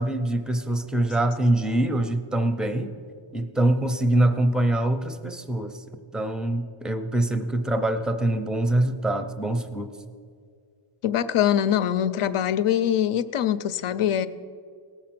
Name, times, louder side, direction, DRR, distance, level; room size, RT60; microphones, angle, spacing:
voice 1, 0.0-3.0 3.3-5.8 6.1-9.9, right 1 dB, ahead, 9 dB, 0.4 m, -24 dB
voice 2, 11.0-14.3, left 10 dB, 80° left, 12 dB, 0.6 m, -23 dB
17.5 x 7.0 x 5.9 m, 2.2 s
wide cardioid pair, 160°, 50 cm